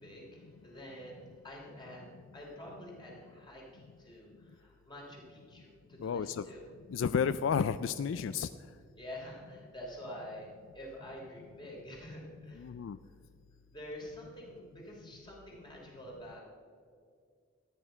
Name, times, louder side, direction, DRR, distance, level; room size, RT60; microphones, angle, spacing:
voice 1, 0.0-6.6 8.9-10.5 10.7-12.7 13.0-13.1 13.7-16.4, equal, 20° left, -3 dB, 3.3 m, -47 dB
voice 2, 6.0-6.5 6.9-8.5 12.6-13.0, left 6 dB, 70° left, 14 dB, 0.3 m, -31 dB
13.5 x 9.8 x 5.7 m, 2.2 s
head